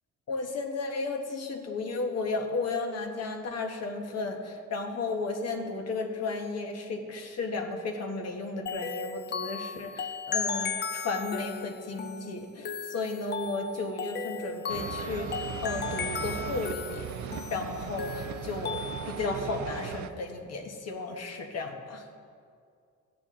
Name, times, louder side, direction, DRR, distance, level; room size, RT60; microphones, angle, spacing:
voice 1, 0.3-22.0, left 3 dB, 55° left, 3 dB, 1.4 m, -34 dB
sound 1, 8.7-19.3, left 5 dB, 35° left, 0.4 m, -36 dB
sound 2, 14.7-20.1, right 9 dB, 70° right, 0.6 m, -38 dB
13.5 x 8.7 x 3.8 m, 2.3 s
cardioid pair, 90°, 30 cm